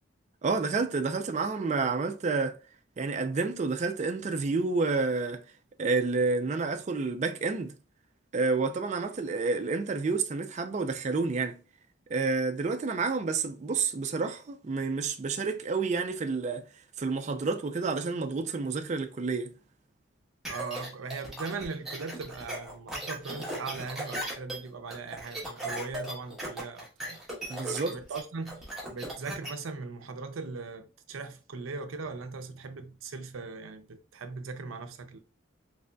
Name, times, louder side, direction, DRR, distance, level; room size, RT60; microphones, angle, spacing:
voice 1, 0.4-2.6 3.0-5.4 5.8-7.7 8.3-11.6 12.1-16.7 17.0-19.5 27.5-28.0, right 4 dB, 35° right, 0.4 m, -29 dB
sound 1, 20.5-29.5, right 1 dB, ahead, 1.0 m, -37 dB
voice 2, 20.5-27.2 27.4-28.6 28.9-35.2, right 4 dB, 90° right, 0.5 m, -39 dB
3.8 x 3.3 x 2.2 m
head